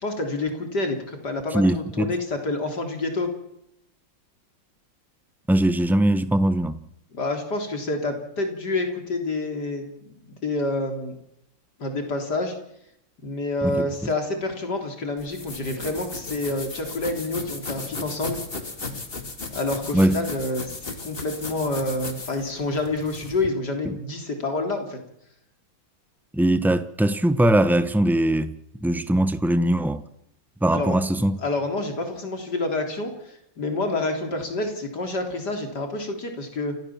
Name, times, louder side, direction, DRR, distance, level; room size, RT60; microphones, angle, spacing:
voice 1, 0.0-3.3 7.1-9.9 10.2-11.2 11.8-12.6 13.2-18.4 19.5-25.0 30.7-31.0 31.4-36.8, left 2 dB, 55° left, 4.1 m, -28 dB
voice 2, 1.5-2.1 5.5-6.8 13.6-13.9 19.9-20.2 23.9-24.0 26.3-28.5 28.8-30.0 30.6-31.4, right 1 dB, ahead, 0.4 m, -21 dB
sound 1, 15.2-23.5, left 3 dB, 30° left, 2.3 m, -36 dB
29.0 x 15.0 x 7.3 m
omnidirectional pair, 2.1 m